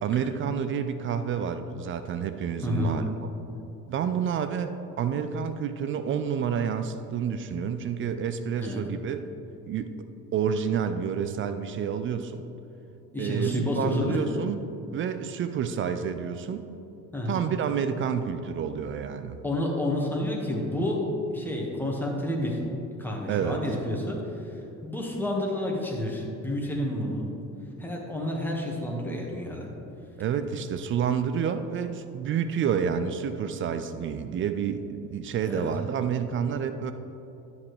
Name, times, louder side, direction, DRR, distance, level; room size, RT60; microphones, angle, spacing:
voice 1, 0.0-3.0 3.9-9.3 9.7-10.0 10.3-12.4 13.2-14.6 14.9-16.7 17.3-19.4 23.3-23.6 30.2-36.9, right 7 dB, 30° right, 9 dB, 0.4 m, -29 dB
voice 2, 2.6-2.9 8.6-8.8 13.1-14.2 17.1-17.4 19.4-21.1 21.3-22.6 23.0-27.3 27.8-29.7 35.5-35.7, left 1 dB, 5° left, -1 dB, 1.6 m, -29 dB
10.5 x 7.7 x 3.3 m, 2.9 s
figure-of-eight pair, 55°, 47 cm